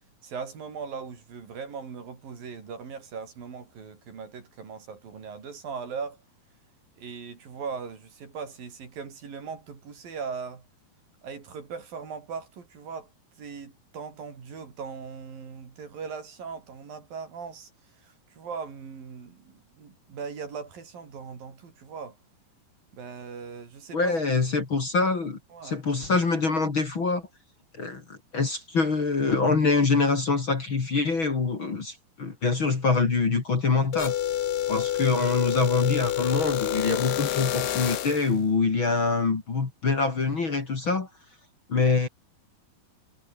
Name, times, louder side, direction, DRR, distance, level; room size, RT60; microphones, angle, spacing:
voice 1, 0.2-6.2 7.0-10.7 11.2-13.1 13.4-17.7 18.0-22.2 22.9-24.1 25.5-25.8, right 5 dB, 65° right, 6.0 m, -39 dB
voice 2, 23.9-27.3 27.7-34.2 34.7-41.1 41.7-42.1, left 4 dB, 35° left, 3.1 m, -25 dB
sound 1, 33.9-38.3, left 11 dB, 85° left, 3.8 m, -28 dB
omnidirectional pair, 4.5 m